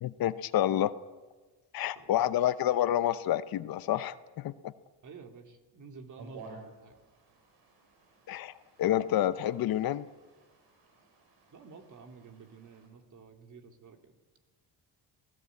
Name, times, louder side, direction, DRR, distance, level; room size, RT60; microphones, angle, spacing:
voice 1, 0.0-0.9 1.7-4.7 8.3-10.1, left 12 dB, 60° left, 14 dB, 0.9 m, -29 dB
voice 2, 1.9-2.3 5.0-7.0 11.5-14.1, right 5 dB, 45° right, 4 dB, 3.1 m, -51 dB
sound 1, 6.2-12.9, right 3 dB, 75° right, 6.6 m, -54 dB
27.0 x 17.5 x 8.5 m, 1.3 s
cardioid pair, 125°, 40 cm